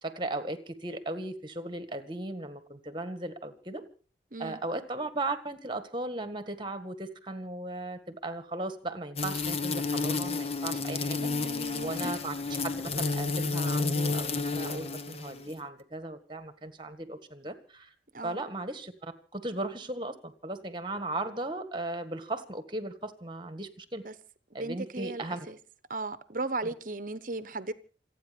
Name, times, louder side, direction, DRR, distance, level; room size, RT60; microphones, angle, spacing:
voice 1, 0.0-3.8 4.4-11.3 11.8-12.3 13.1-17.9 18.2-24.0 24.5-25.5, right 2 dB, 25° right, 1.8 m, -37 dB
sound 1, 9.2-15.5, left 4 dB, 35° left, 1.0 m, -31 dB
voice 2, 11.2-12.1 18.1-18.4 24.0-24.1 24.5-25.6 25.9-27.7, right 2 dB, 45° right, 1.0 m, -36 dB
28.0 x 9.5 x 5.3 m
head